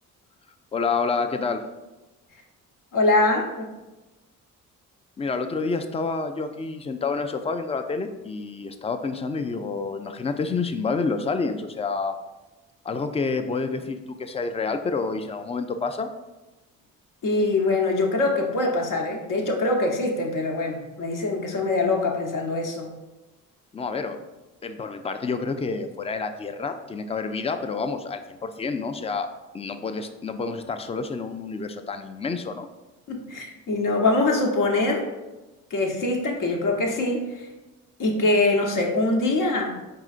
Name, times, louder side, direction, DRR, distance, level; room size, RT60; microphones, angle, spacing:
voice 1, 0.7-1.6 5.2-12.2 12.8-16.1 23.7-24.2 24.6-29.3 29.5-32.7, left 4 dB, 15° left, 8 dB, 0.4 m, -28 dB
voice 2, 2.9-3.7 17.2-22.9 33.1-35.1 35.7-37.5 38.0-39.8, left 2 dB, 55° left, 2 dB, 0.9 m, -23 dB
4.8 x 3.8 x 2.4 m, 1.1 s
supercardioid pair, 60°, 37 cm